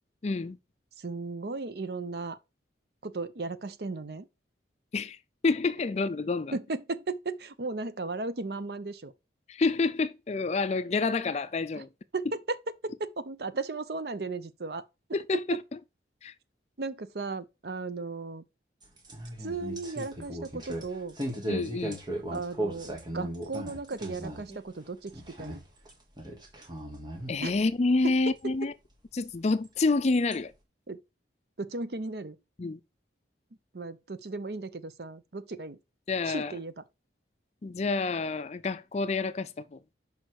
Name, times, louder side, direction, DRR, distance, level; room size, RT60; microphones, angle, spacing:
voice 1, 0.2-0.6 4.9-5.2 5.4-6.6 9.5-11.9 15.1-15.6 16.2-16.3 21.5-22.0 27.3-28.7 29.1-30.5 32.6-32.8 36.1-36.5 37.6-39.8, left 3 dB, 35° left, 0.4 m, -28 dB
voice 2, 1.0-2.4 3.0-4.3 6.5-9.1 12.1-12.6 12.8-14.8 15.3-15.6 16.8-18.4 19.4-21.2 22.3-25.6 27.4-27.6 28.0-28.1 30.9-31.0 31.6-32.4 33.7-35.8 36.3-36.8, right 3 dB, 60° right, 0.7 m, -35 dB
sound 1, 18.8-24.6 24.9-25.9 26.2-27.3 28.4-28.5 29.6-29.7 30.3-30.4, right 1 dB, 25° right, 1.6 m, -37 dB
6.4 x 5.1 x 4.6 m
head